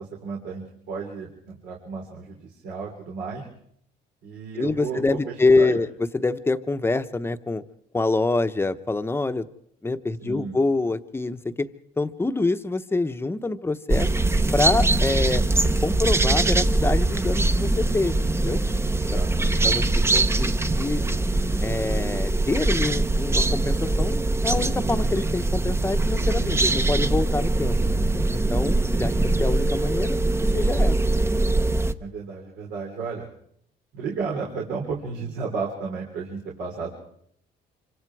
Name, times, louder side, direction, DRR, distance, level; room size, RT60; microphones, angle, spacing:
voice 1, 0.0-3.5 4.2-5.8 10.2-10.6 19.0-20.3 26.4-26.8 29.1-29.3 32.0-33.3 33.9-36.9, right 5 dB, 80° right, -1 dB, 3.8 m, -33 dB
voice 2, 4.5-5.9 6.1-7.6 7.9-9.5 9.8-11.7 12.0-14.1 14.5-15.4 15.8-18.6 19.1-19.2 19.6-19.8 20.1-21.0 21.6-27.8 28.3-30.2 30.5-31.0, left 3 dB, 15° left, 9 dB, 1.0 m, -25 dB
sound 1, 13.9-31.9, right 2 dB, 15° right, 0.8 m, -22 dB
26.0 x 24.5 x 4.8 m, 0.69 s
cardioid pair, 110°, 17 cm